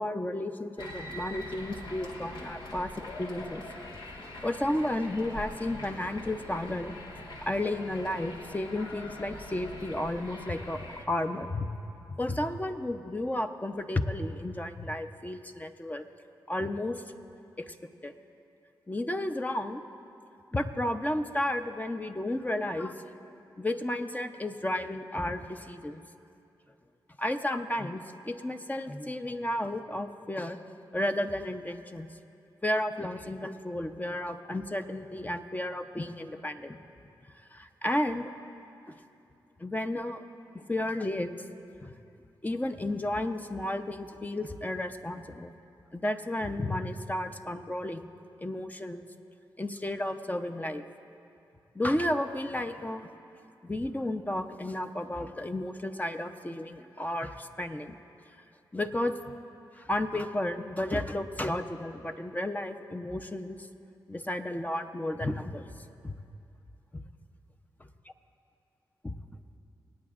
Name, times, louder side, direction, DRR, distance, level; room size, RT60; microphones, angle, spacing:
voice 1, 0.0-2.9 3.2-3.6 4.4-6.9 7.4-10.8 11.1-11.7 12.1-16.1 16.5-17.0 17.6-17.7 18.0-18.1 18.9-19.8 20.5-22.9 23.6-26.0 27.2-30.6 30.9-32.1 32.6-36.8 37.5-38.3 39.6-40.2 40.5-41.3 41.8-41.9 42.4-45.5 45.9-48.1 48.4-49.0 49.6-50.8 51.7-53.1 53.6-58.0 58.7-59.2 59.8-63.6 64.1-65.6 66.0-66.1 69.0-69.2, left 1 dB, 20° left, 7 dB, 0.7 m, -32 dB
sound 1, 0.8-11.0, left 1 dB, 70° left, 1.4 m, -43 dB
25.5 x 8.7 x 2.5 m, 2.6 s
supercardioid pair, 45°, 8 cm